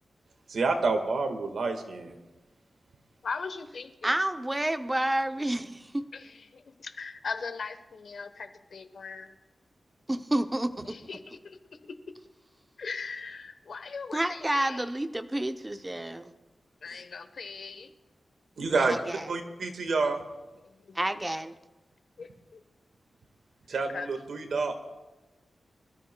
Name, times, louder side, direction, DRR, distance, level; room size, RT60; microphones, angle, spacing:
voice 1, 0.5-2.2 18.6-19.0 19.3-20.2 23.7-24.7, right 3 dB, 80° right, 5 dB, 1.5 m, -28 dB
voice 2, 3.2-4.2 6.1-9.4 10.8-12.0 12.8-14.8 16.8-17.9 20.6-21.0 22.2-22.6 23.9-24.1, left 5 dB, 65° left, 9 dB, 0.9 m, -40 dB
voice 3, 4.0-6.0 10.1-10.9 14.1-16.3 18.7-19.3 20.9-21.5, right 1 dB, 15° right, 8 dB, 0.6 m, -29 dB
25.5 x 13.5 x 2.2 m, 1.1 s
wide cardioid pair, 145°, 0 cm